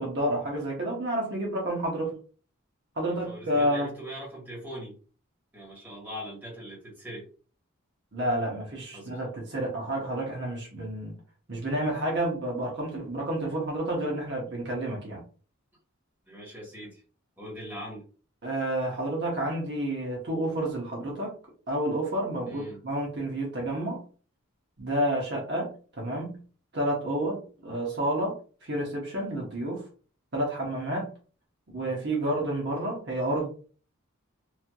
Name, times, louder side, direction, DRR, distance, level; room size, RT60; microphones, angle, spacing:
voice 1, 0.0-2.2 2.9-3.9 8.1-11.2 11.5-15.2 18.4-21.3 21.7-24.0 24.8-26.4 26.7-28.4 28.6-29.9 30.3-31.1 31.7-33.5, right 1 dB, 50° right, -2 dB, 0.9 m, -30 dB
voice 2, 3.0-5.0 5.5-7.3 8.9-9.1 16.3-17.0 17.4-18.0 22.4-22.8, equal, 10° right, -4 dB, 1.4 m, -41 dB
3.2 x 2.7 x 2.2 m, 0.39 s
head